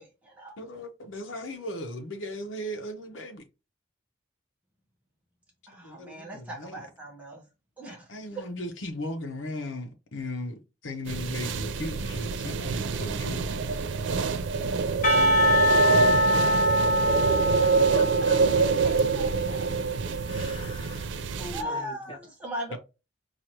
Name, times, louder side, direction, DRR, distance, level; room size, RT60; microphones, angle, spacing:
voice 1, 0.0-0.5 5.7-7.4 7.8-8.4 16.3-16.7 18.8-19.7 21.5-22.8, equal, 5° right, 0.9 m, -39 dB
voice 2, 0.6-3.4 5.8-6.9 8.1-13.4 22.7-22.8, left 1 dB, 80° left, 0.8 m, -36 dB
sound 1, 11.1-21.6, right 4 dB, 65° right, 0.4 m, -26 dB
Percussion, 15.0-19.9, equal, 45° left, 1.0 m, -24 dB
voice 3, 17.6-18.4 20.3-21.1 21.4-21.9, left 3 dB, 25° left, 0.6 m, -40 dB
4.7 x 2.4 x 2.8 m
head